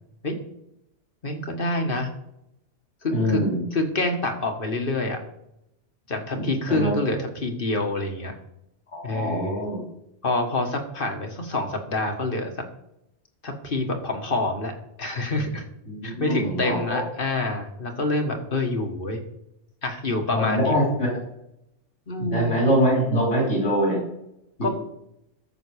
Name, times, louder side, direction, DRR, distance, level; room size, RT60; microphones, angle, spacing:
voice 1, 1.2-2.1 3.0-3.4 3.7-5.2 6.1-8.3 9.0-9.6 10.2-12.5 13.4-14.7 15.0-15.6 16.0-19.2 19.8-20.7 22.1-22.5 24.6-24.7, left 2 dB, 50° left, 4 dB, 1.6 m, -27 dB
voice 2, 3.1-3.6 6.3-6.9 8.9-9.8 15.9-17.0 20.3-21.1 22.2-24.0, equal, 85° left, -3 dB, 3.8 m, -24 dB
14.0 x 6.3 x 4.8 m, 0.82 s
omnidirectional pair, 1.2 m